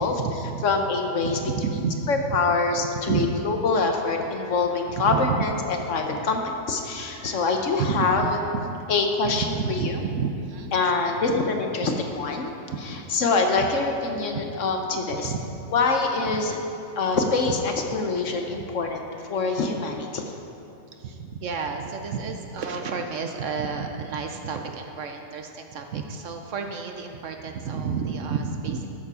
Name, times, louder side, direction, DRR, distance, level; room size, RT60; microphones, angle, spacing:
voice 1, 0.0-0.6 1.2-2.4 3.1-3.3 4.9-5.5 7.0-8.8 9.2-11.2 11.8-12.0 12.7-12.8 13.6-13.7 14.3-14.4 15.1-15.6 16.3-16.4 17.2-17.6 18.5-18.6 20.9-28.9, right 5 dB, 60° right, 4 dB, 0.9 m, -31 dB
voice 2, 0.6-1.4 2.1-8.3 8.9-10.0 10.7-12.6 13.1-15.3 15.7-16.6 17.0-19.0 19.3-20.2, left 4 dB, 60° left, 3 dB, 1.1 m, -25 dB
13.0 x 7.1 x 4.9 m, 2.8 s
omnidirectional pair, 1.6 m